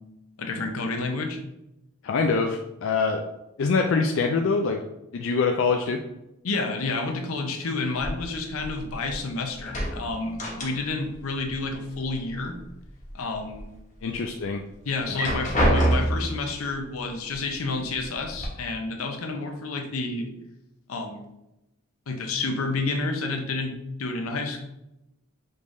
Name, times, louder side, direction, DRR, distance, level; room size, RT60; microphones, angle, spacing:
voice 1, 0.4-1.4 6.4-12.6 13.1-13.7 14.8-20.3 20.9-21.3 22.1-24.6, left 3 dB, 90° left, 4 dB, 0.7 m, -30 dB
voice 2, 2.0-3.2 3.6-4.8 5.1-6.0 14.0-14.6 15.1-15.2, left 4 dB, 65° left, 3 dB, 0.3 m, -24 dB
sound 1, 8.0-9.2 9.5-11.1 11.4-12.4 12.8-13.6 14.1-14.2 15.0-16.4 17.3-17.4 17.8-18.4, equal, 35° left, 1.1 m, -26 dB
5.2 x 3.3 x 2.6 m, 0.89 s
head